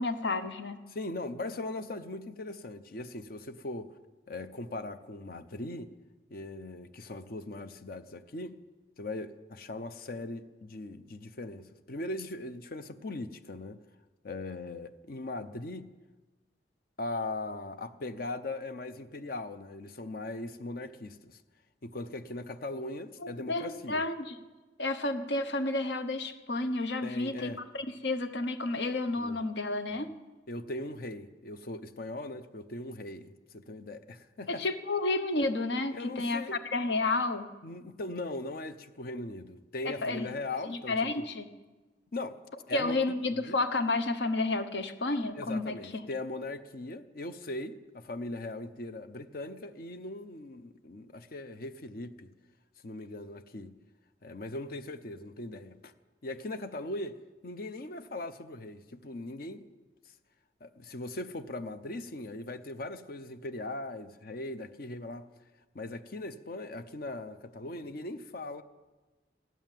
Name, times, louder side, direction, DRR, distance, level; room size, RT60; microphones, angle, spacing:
voice 1, 0.0-0.8 23.2-24.4 24.8-27.5 27.7-30.1 34.5-37.5 39.8-40.3 40.7-41.5 42.7-45.7, left 2 dB, 75° left, 1.0 m, -31 dB
voice 2, 0.9-3.9 4.3-5.9 6.3-8.6 9.0-13.8 14.2-16.0 17.0-21.4 21.8-24.0 27.0-27.6 29.2-29.4 29.9-30.1 30.5-34.7 35.9-36.6 37.6-41.3 42.1-42.4 42.7-43.6 45.3-52.3 52.8-53.8 54.2-55.9 56.2-59.7 60.6-65.3 65.7-68.6, left 2 dB, 55° left, 0.7 m, -39 dB
15.0 x 11.0 x 7.5 m
head